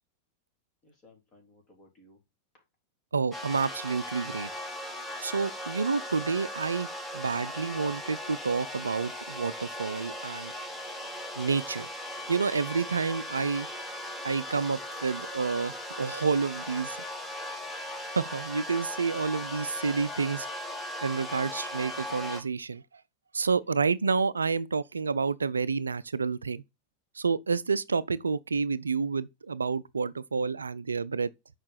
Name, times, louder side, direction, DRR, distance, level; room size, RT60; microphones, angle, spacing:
voice 1, 0.8-2.2 2.5-2.6 12.1-12.3 21.3-21.7 23.6-23.7, left 2 dB, 25° left, 3.9 m, -59 dB
voice 2, 3.1-4.5 5.2-6.9 7.1-10.5 11.4-11.9 12.3-13.7 14.2-15.7 16.0-17.0 18.2-20.5 21.0-22.8 23.3-26.6 27.2-31.3, right 5 dB, 75° right, 0.4 m, -29 dB
sound 1, 3.3-22.4, left 1 dB, 5° left, 1.3 m, -38 dB
6.4 x 4.8 x 5.7 m
figure-of-eight pair, 90°, 0 cm